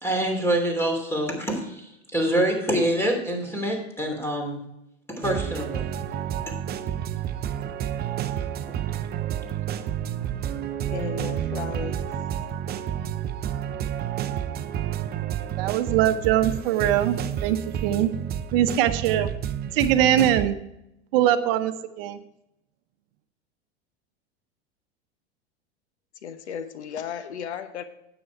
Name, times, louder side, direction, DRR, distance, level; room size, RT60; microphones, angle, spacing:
voice 1, 0.0-4.6 5.1-5.9 6.5-6.6, right 1 dB, 5° left, 3 dB, 3.0 m, -26 dB
sound 1, 5.2-20.5, right 10 dB, 30° right, 0.6 m, -30 dB
voice 2, 10.9-12.0 26.2-27.8, left 7 dB, 80° left, 11 dB, 1.0 m, -34 dB
voice 3, 15.6-18.1 18.5-19.3 19.7-20.6 21.1-22.2, right 11 dB, 60° right, 10 dB, 0.9 m, -22 dB
9.5 x 8.2 x 4.6 m, 0.83 s
hypercardioid pair, 100°, 33 cm